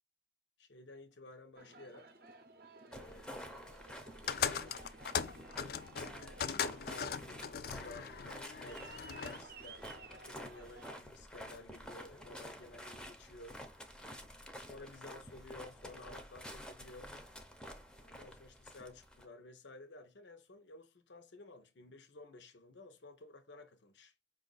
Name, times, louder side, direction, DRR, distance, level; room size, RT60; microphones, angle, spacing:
voice 1, 0.6-2.1 2.9-4.9 5.9-6.4 6.9-13.6 14.7-17.2 18.0-24.1, left 2 dB, 75° left, 0.7 m, -54 dB
Aircraft, 1.6-11.0, right 4 dB, 50° right, 0.6 m, -56 dB
sound 1, 2.9-19.3, equal, 5° left, 0.5 m, -50 dB
sound 2, 4.3-9.4, left 7 dB, 55° left, 0.3 m, -39 dB
5.2 x 2.5 x 3.9 m
head